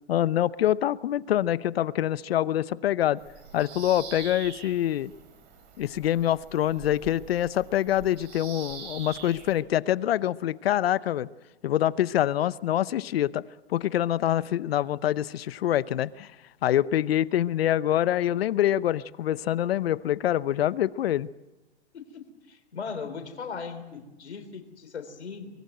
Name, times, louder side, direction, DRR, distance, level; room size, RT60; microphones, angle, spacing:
voice 1, 0.1-3.2 3.5-5.1 5.8-11.3 11.6-13.4 13.7-16.3 16.6-21.3, left 12 dB, 65° left, 18 dB, 0.9 m, -25 dB
Bird vocalization bird call bird song, 3.2-9.6, right 7 dB, 30° right, 5.5 m, -44 dB
voice 2, 22.5-25.5, left 5 dB, 90° left, 8 dB, 3.7 m, -38 dB
23.5 x 22.0 x 7.9 m, 1.1 s
hypercardioid pair, 140°, 32 cm